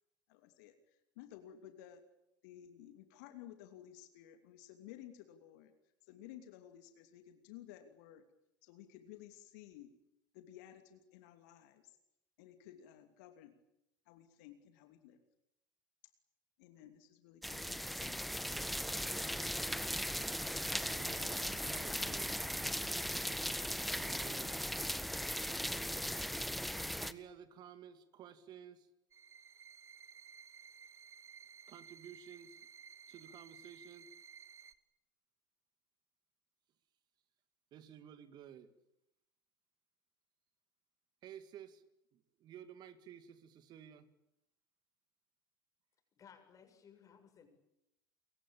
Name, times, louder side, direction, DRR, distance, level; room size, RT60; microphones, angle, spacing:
voice 1, 0.3-2.0 2.4-5.7 6.1-8.2 8.6-9.9 10.3-12.0 12.4-13.5 14.1-15.2 16.6-18.7, left 11 dB, 60° left, 7 dB, 2.8 m, -55 dB
sound 1, 17.4-27.1, equal, ahead, 1.4 m, -38 dB
voice 2, 20.9-22.5 23.9-24.7 27.0-28.9 31.7-32.6 33.1-34.1 37.7-38.7 41.2-41.8 42.1-44.1, right 9 dB, 45° right, 12 dB, 2.3 m, -54 dB
sound 2, 29.1-34.7, right 7 dB, 25° right, 1.8 m, -56 dB
voice 3, 46.2-47.5, left 7 dB, 35° left, 6 dB, 7.0 m, -60 dB
28.0 x 23.5 x 8.8 m, 0.84 s
figure-of-eight pair, 70°, 10 cm